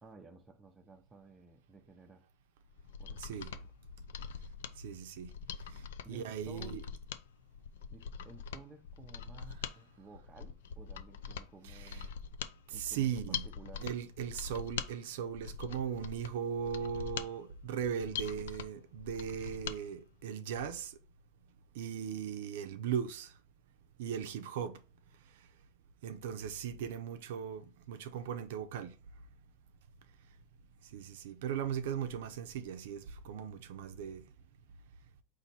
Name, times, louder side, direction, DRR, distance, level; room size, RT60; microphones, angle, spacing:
voice 1, 0.0-2.3 3.0-3.7 6.0-6.8 7.9-12.1 12.7-13.9, right 3 dB, 15° right, 0.6 m, -55 dB
Mechanisms, 2.7-19.8 20.1-20.2, left 7 dB, 85° left, 0.4 m, -43 dB
voice 2, 3.2-3.5 4.8-5.3 5.7-6.8 9.6-9.7 11.6-12.1 12.7-13.5 13.8-20.9 21.7-23.3 24.0-24.8 26.0-28.9 30.8-34.3, right 8 dB, 75° right, 0.5 m, -38 dB
4.1 x 2.6 x 4.1 m
supercardioid pair, 130°, 0 cm